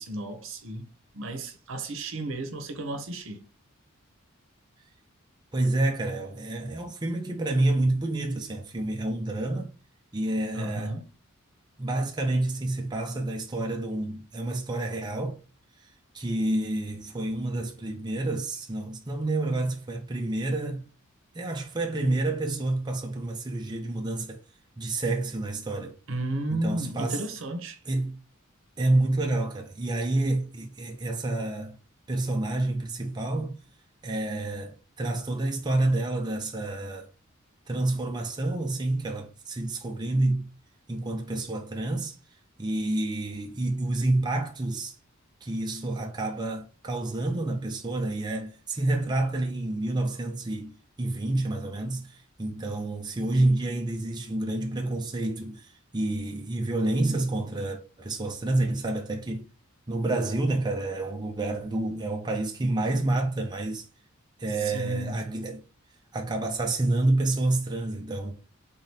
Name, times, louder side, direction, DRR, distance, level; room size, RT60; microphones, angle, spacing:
voice 1, 0.0-3.4 10.5-11.1 26.1-27.8 64.5-65.2, right 2 dB, 65° right, 0.8 m, -33 dB
voice 2, 5.5-9.7 10.1-11.0 11.8-15.4 16.1-20.9 21.3-24.4 24.8-26.0 26.5-27.2 27.9-28.2 28.8-31.8 32.1-33.6 34.0-37.1 37.7-40.5 40.9-42.2 42.6-45.0 45.4-59.4 59.9-63.8 64.4-65.6 66.1-68.3, right 2 dB, 20° right, 0.5 m, -28 dB
3.7 x 3.6 x 2.7 m
head